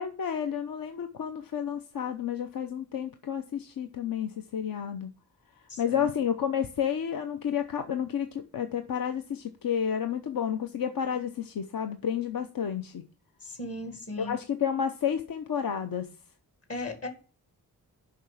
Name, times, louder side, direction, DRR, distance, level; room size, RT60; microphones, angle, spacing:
voice 1, 0.0-5.1 5.8-13.0 14.2-16.1, left 8 dB, 60° left, 0.8 m, -31 dB
voice 2, 5.7-6.1 13.4-14.4 16.7-17.1, left 2 dB, 40° left, 1.8 m, -37 dB
7.2 x 5.7 x 7.1 m
wide cardioid pair, 165°, 38 cm